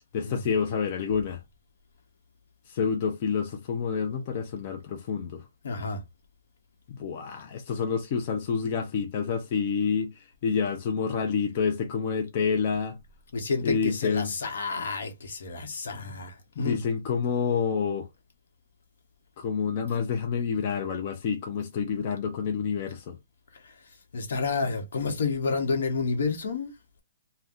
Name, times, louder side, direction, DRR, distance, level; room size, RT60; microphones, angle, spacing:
voice 1, 0.1-1.4 2.7-5.4 7.0-13.0 13.6-14.3 15.9-16.1 16.6-18.1 19.4-23.2, left 6 dB, 35° left, 0.5 m, -28 dB
voice 2, 5.6-6.0 13.3-16.8 23.6-23.7 24.1-26.7, left 4 dB, 70° left, 1.0 m, -30 dB
2.6 x 2.2 x 3.5 m
hypercardioid pair, 165°, 0 cm